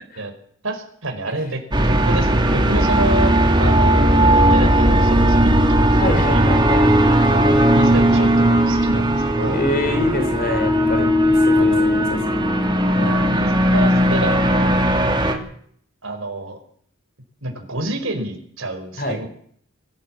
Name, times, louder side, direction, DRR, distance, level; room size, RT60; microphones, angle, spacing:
voice 1, 0.6-1.6 2.0-3.3 3.6-6.5 7.3-9.6 11.5-11.9 13.3-14.8 16.0-16.6 17.4-19.3, right 1 dB, 75° right, 4 dB, 4.8 m, -28 dB
sound 1, 1.7-15.3, right 1 dB, 20° right, 2.7 m, -17 dB
voice 2, 6.0-6.9 9.5-12.2 13.0-13.3 19.0-19.3, left 1 dB, 45° left, 7 dB, 4.7 m, -26 dB
23.5 x 15.5 x 7.6 m, 0.63 s
head